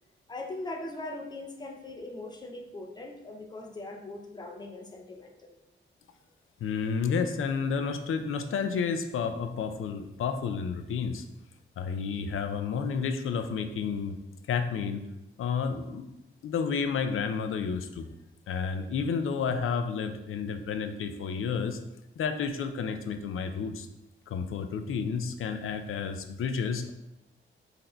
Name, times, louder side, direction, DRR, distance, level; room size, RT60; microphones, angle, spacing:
voice 1, 0.3-5.5, left 2 dB, 20° left, 2 dB, 0.5 m, -40 dB
voice 2, 6.6-11.2 11.8-14.2 14.5-15.0 15.4-16.1 16.4-18.1 18.5-21.8 22.2-23.9 24.3-26.9, left 6 dB, 80° left, 7 dB, 0.4 m, -31 dB
4.1 x 2.6 x 4.3 m, 0.92 s
wide cardioid pair, 170°, 21 cm